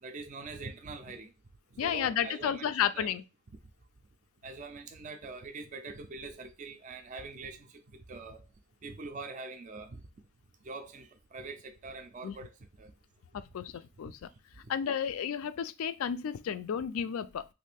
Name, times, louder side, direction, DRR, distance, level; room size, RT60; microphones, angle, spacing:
voice 1, 0.0-1.3 1.7-3.2 4.4-8.5 8.8-10.0 10.6-12.9 14.0-14.1, right 3 dB, 35° right, 0.4 m, -44 dB
voice 2, 1.8-3.2 12.2-12.3 13.5-13.7 14.0-14.3 14.7-17.5, left 8 dB, 65° left, 0.3 m, -32 dB
3.1 x 2.5 x 3.3 m
head